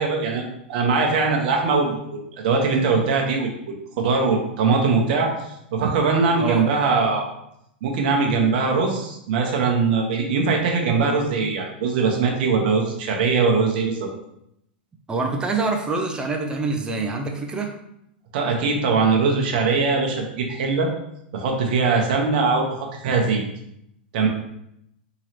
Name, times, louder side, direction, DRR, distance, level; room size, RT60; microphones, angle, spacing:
voice 1, 0.0-5.3 5.7-7.2 7.8-14.1 18.3-20.9 21.3-22.6 23.0-23.4 24.1-24.3, right 4 dB, 60° right, 1 dB, 0.9 m, -21 dB
voice 2, 15.1-17.7, right 3 dB, 15° right, 3 dB, 0.6 m, -25 dB
3.7 x 3.0 x 2.9 m, 0.78 s
hypercardioid pair, 110°, 6 cm